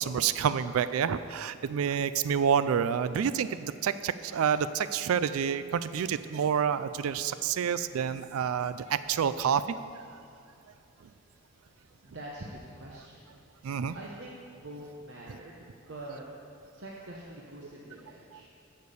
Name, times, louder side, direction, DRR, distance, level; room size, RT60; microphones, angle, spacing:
voice 1, 0.0-9.8 13.6-14.0 18.3-18.4, right 7 dB, 85° right, 13 dB, 0.4 m, -28 dB
voice 2, 12.0-13.2 13.9-16.2 16.8-18.5, right 1 dB, 55° right, -3 dB, 1.0 m, -44 dB
9.2 x 6.7 x 6.9 m, 2.5 s
head